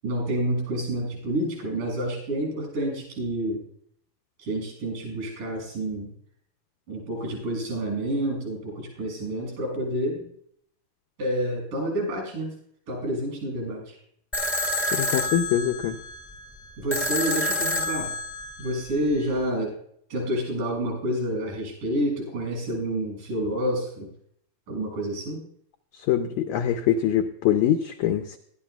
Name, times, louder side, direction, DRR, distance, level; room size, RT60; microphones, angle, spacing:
voice 1, 0.0-3.6 4.4-6.1 6.9-10.3 11.2-12.5 12.9-14.0 16.8-18.1 18.6-19.8 20.1-24.1 24.7-25.4, right 1 dB, 70° right, 0 dB, 8.5 m, -29 dB
sound 1, 14.3-19.3, left 1 dB, 5° left, 0.9 m, -29 dB
voice 2, 14.9-16.0 26.1-28.4, left 10 dB, 80° left, 6 dB, 1.7 m, -23 dB
20.0 x 13.0 x 2.3 m, 0.67 s
omnidirectional pair, 4.0 m